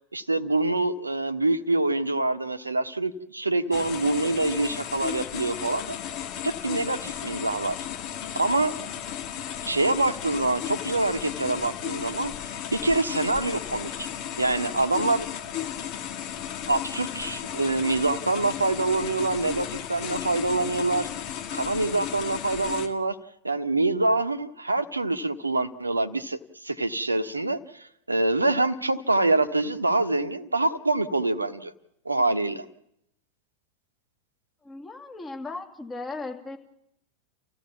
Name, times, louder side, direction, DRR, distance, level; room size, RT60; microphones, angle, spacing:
voice 1, 0.1-6.0 6.4-7.8 8.3-8.8 9.6-12.3 12.7-14.1 14.4-15.3 16.7-21.1 21.5-23.2 23.4-31.7 32.0-32.6, right 2 dB, 80° right, 11 dB, 1.1 m, -25 dB
sound 1, 3.7-22.9, left 10 dB, 40° left, 1.9 m, -35 dB
voice 2, 34.6-36.6, left 3 dB, 15° left, 3 dB, 2.6 m, -37 dB
30.0 x 15.5 x 7.2 m, 0.80 s
figure-of-eight pair, 90°, 0 cm